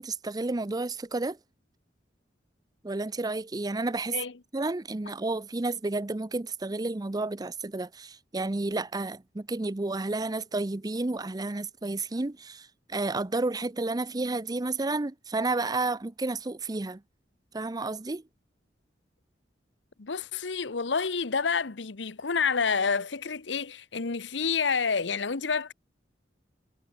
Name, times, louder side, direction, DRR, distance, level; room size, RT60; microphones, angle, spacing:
voice 1, 0.0-1.4 2.8-4.2 4.5-17.0 17.5-18.2, right 2 dB, 20° right, 0.6 m, -31 dB
voice 2, 20.0-25.7, left 5 dB, 75° left, 1.0 m, -28 dB
head